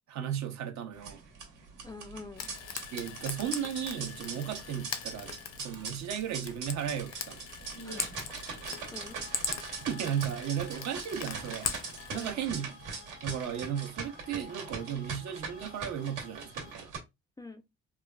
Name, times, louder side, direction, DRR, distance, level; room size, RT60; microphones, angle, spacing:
voice 1, 0.1-1.2 2.9-5.3 5.6-7.5 9.8-11.7 12.1-12.6 13.2-16.9, right 9 dB, 65° right, 0.7 m, -35 dB
sound 1, 0.9-17.0, right 4 dB, 85° right, 1.1 m, -42 dB
voice 2, 1.8-2.5 7.8-8.0 8.3-9.2 12.1-12.3 17.4-17.6, left 3 dB, 15° left, 0.3 m, -46 dB
Frying (food), 2.4-12.3, left 7 dB, 60° left, 0.5 m, -41 dB
sound 2, 8.5-16.7, left 5 dB, 85° left, 0.9 m, -54 dB
3.1 x 2.3 x 2.2 m
cardioid pair, 90°, 30 cm